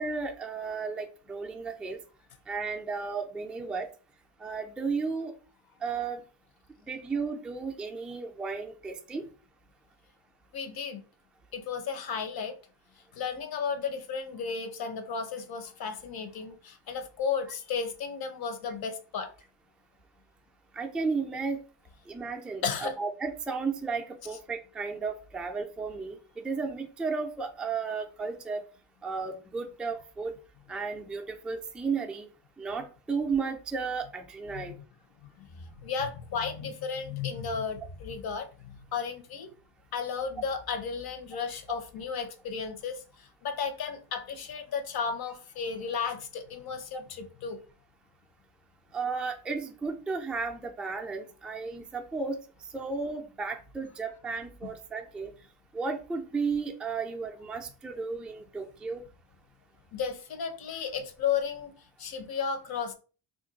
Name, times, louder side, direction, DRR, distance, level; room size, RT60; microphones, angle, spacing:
voice 1, 0.0-2.0 2.5-3.9 4.4-5.3 5.8-6.2 6.9-9.2 20.7-21.6 22.1-28.6 29.0-30.3 30.7-32.3 32.6-34.8 48.9-52.4 52.7-55.3 55.7-59.0, right 4 dB, ahead, 0.3 m, -34 dB
voice 2, 10.5-11.0 11.5-12.6 13.1-19.3 22.6-22.9 34.5-34.7 35.2-39.5 39.9-47.6 54.6-54.7 59.9-61.7 62.0-62.9, left 6 dB, 55° left, 0.7 m, -34 dB
2.5 x 2.2 x 3.9 m
cardioid pair, 100°, 44 cm